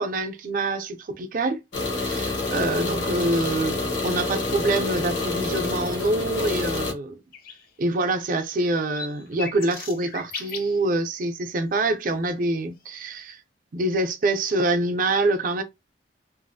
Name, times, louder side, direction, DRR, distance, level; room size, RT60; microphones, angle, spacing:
voice 1, 0.0-1.6 2.0-7.2 7.8-13.4 13.7-15.6, right 2 dB, 45° right, 0.4 m, -25 dB
sound 1, 1.7-6.9, left 3 dB, 85° left, 0.8 m, -27 dB
sound 2, 7.3-7.7 8.0-8.1 8.6-10.8 12.9-13.0, left 5 dB, 50° left, 0.5 m, -37 dB
2.5 x 2.4 x 2.6 m
head